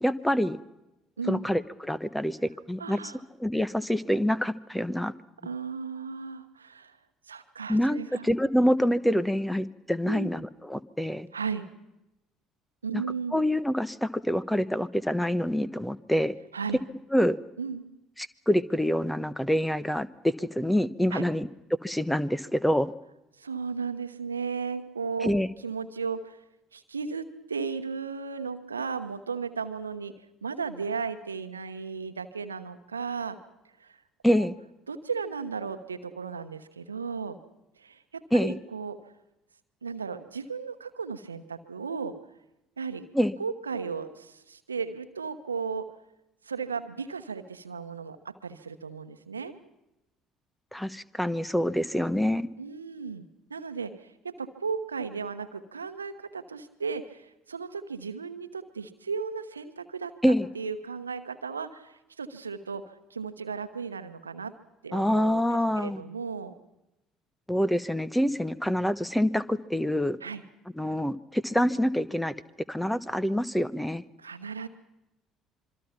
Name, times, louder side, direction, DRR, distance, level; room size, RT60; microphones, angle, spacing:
voice 1, 0.0-0.6 1.3-3.0 3.4-5.1 7.7-8.0 8.2-11.3 12.9-13.0 13.3-16.3 17.1-17.4 18.2-21.5 21.8-22.9 25.2-25.5 34.2-34.5 38.3-38.6 43.1-43.4 50.7-52.5 60.2-60.5 64.9-66.0 67.5-70.2 70.8-72.3 72.7-74.0, equal, 5° left, 16 dB, 1.1 m, -26 dB
voice 2, 2.8-3.2 5.4-7.0 7.3-8.3 10.1-10.3 11.3-11.7 12.8-13.4 16.5-16.8 17.6-17.8 21.1-21.2 23.4-25.3 25.6-26.4 26.7-30.1 30.4-33.4 33.8-34.0 34.3-34.5 34.9-37.4 37.8-39.0 39.8-42.2 42.8-43.0 43.4-45.9 46.4-49.5 52.6-60.1 60.5-64.5 64.8-65.4 65.8-66.5 70.2-70.4 74.2-74.7, right 5 dB, 85° right, 10 dB, 1.1 m, -35 dB
26.0 x 24.0 x 5.9 m, 0.93 s
figure-of-eight pair, 55°, 0 cm